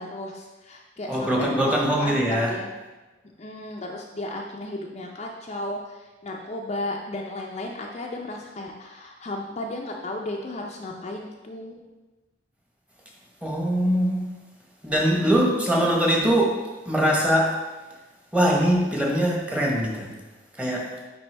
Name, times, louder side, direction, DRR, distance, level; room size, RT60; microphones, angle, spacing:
voice 1, 0.0-1.3 1.7-2.7 3.4-11.8, left 1 dB, 35° left, 0 dB, 0.5 m, -34 dB
voice 2, 1.1-2.5 13.4-14.3 14.8-17.6 18.3-20.1 20.6-20.9, equal, 5° right, -2 dB, 1.0 m, -22 dB
9.6 x 3.5 x 3.3 m, 1.2 s
head